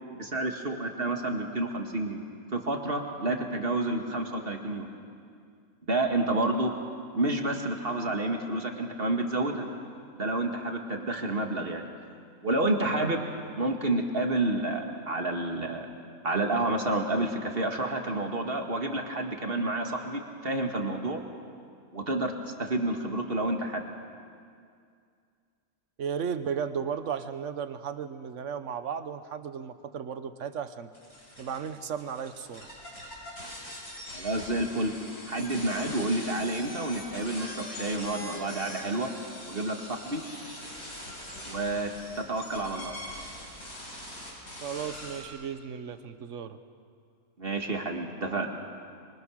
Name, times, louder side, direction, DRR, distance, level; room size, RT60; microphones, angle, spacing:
voice 1, 0.1-2.2 2.5-4.9 5.9-6.7 7.1-9.7 10.2-11.9 12.4-13.2 13.6-15.9 16.2-21.2 21.9-22.3 22.6-23.8 34.1-34.9 35.3-39.1 39.5-40.2 41.4-42.9 47.4-48.5, right 2 dB, 40° right, 3 dB, 2.2 m, -29 dB
voice 2, 26.0-30.9 31.4-32.7 44.6-46.6, right 7 dB, 60° right, 10 dB, 1.3 m, -35 dB
sound 1, 30.9-45.3, left 1 dB, 80° left, 7.5 m, -42 dB
26.5 x 24.0 x 6.4 m, 2.2 s
omnidirectional pair, 1.5 m